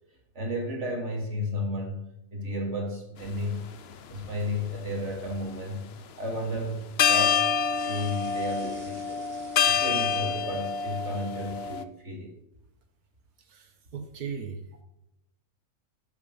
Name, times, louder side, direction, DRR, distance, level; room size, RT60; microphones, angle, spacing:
voice 1, 0.3-3.6 4.1-5.9 6.2-9.2 9.6-12.3, left 1 dB, 50° right, 0 dB, 3.1 m, -33 dB
sound 1, 3.2-3.4 4.1-5.1 6.6-6.7 7.0-11.8, left 6 dB, 55° left, 0.8 m, -27 dB
sound 2, 7.6-10.8 11.2-11.9, right 1 dB, 20° right, 1.8 m, -51 dB
voice 2, 13.5-14.6, right 6 dB, 85° right, 5 dB, 1.8 m, -37 dB
12.0 x 8.2 x 4.1 m, 0.86 s
omnidirectional pair, 1.5 m